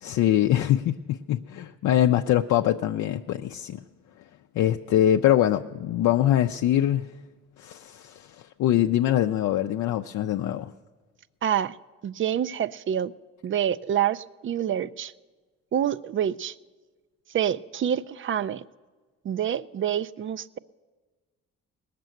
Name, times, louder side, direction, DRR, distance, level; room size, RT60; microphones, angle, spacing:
voice 1, 0.0-3.8 4.6-7.1 7.6-10.7, left 12 dB, 70° left, 0.5 m, -23 dB
voice 2, 11.4-11.8 12.0-13.1 13.4-15.1 15.7-16.5 17.3-18.6 19.2-20.6, right 9 dB, 40° right, 0.4 m, -27 dB
19.0 x 6.8 x 9.0 m
cardioid pair, 90°, 30 cm